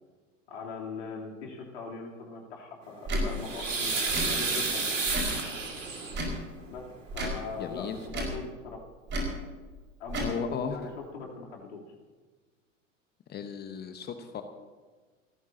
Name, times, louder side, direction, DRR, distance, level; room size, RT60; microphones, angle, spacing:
voice 1, 0.5-5.0 6.7-6.9 7.1-8.9 10.0-11.8, left 4 dB, 60° left, -1 dB, 3.5 m, -40 dB
Tick / Tick-tock, 3.0-3.3 4.1-4.3 5.1-5.4 6.1-6.4 7.1-7.4 8.1-8.4 9.1-9.3 10.1-10.3, right 1 dB, 30° right, 5.3 m, -31 dB
sound 1, 3.0-6.3 7.5-7.6 7.9-8.1, right 4 dB, 75° right, 2.6 m, -31 dB
voice 2, 7.6-8.0 10.2-10.8 13.3-14.4, left 7 dB, 25° left, 7 dB, 1.1 m, -35 dB
29.0 x 14.5 x 2.9 m, 1.4 s
figure-of-eight pair, 85°, 39 cm